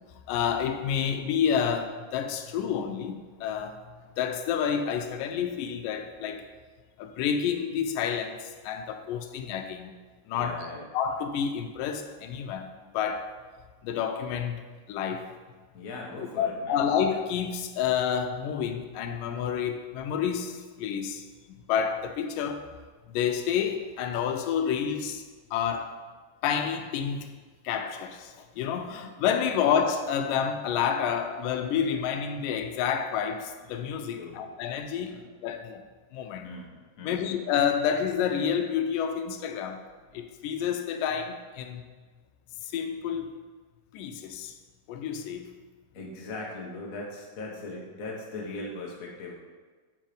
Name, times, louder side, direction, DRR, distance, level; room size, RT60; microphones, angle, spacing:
voice 1, 0.3-3.8 4.2-6.5 7.0-9.9 10.3-10.6 10.9-13.3 13.8-15.3 16.4-21.2 21.7-22.6 23.1-25.2 25.5-26.0 26.4-27.3 27.6-35.2 35.4-35.8 36.1-36.5 37.0-39.8 40.1-41.9 42.6-43.4 43.9-44.6 44.9-45.5, left 8 dB, 85° left, 7 dB, 2.2 m, -29 dB
voice 2, 10.3-10.8 15.7-16.9 29.5-29.6 34.2-34.5 35.1-35.3 36.4-37.3 45.9-49.3, left 2 dB, 55° left, -2 dB, 0.9 m, -39 dB
9.1 x 4.8 x 5.1 m, 1.4 s
omnidirectional pair, 3.8 m